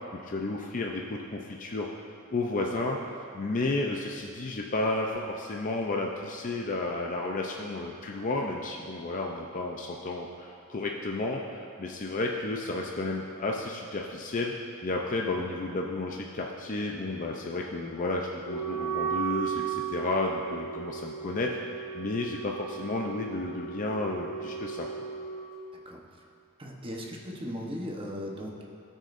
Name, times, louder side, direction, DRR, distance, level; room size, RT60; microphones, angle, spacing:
voice 1, 0.1-1.9 2.3-25.1, left 2 dB, 40° left, 0 dB, 0.5 m, -32 dB
Wind instrument woodwind instrument, 18.4-25.5, right 8 dB, 75° left, 1.8 m, -35 dB
voice 2, 26.6-28.6, equal, 25° right, -1 dB, 1.0 m, -37 dB
17.0 x 6.3 x 2.6 m, 2.5 s
head